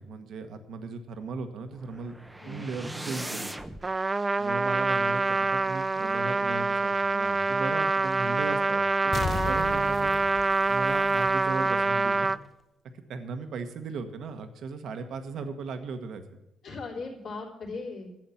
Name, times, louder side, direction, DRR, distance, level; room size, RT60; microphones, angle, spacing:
voice 1, 0.0-2.1 2.4-3.5 4.4-10.2 10.7-12.3 12.9-16.4, right 4 dB, 70° right, 7 dB, 1.3 m, -37 dB
sound 1, 1.7-3.9, right 1 dB, 5° right, 0.7 m, -39 dB
Trumpet, 3.8-12.4, right 3 dB, 25° right, 0.3 m, -26 dB
sound 2, 9.1-11.7 12.1-12.2, left 5 dB, 40° left, 0.6 m, -35 dB
voice 2, 16.6-18.1, left 3 dB, 65° left, -2 dB, 3.5 m, -38 dB
12.0 x 7.8 x 7.2 m, 0.91 s
cardioid pair, 90°, 0 cm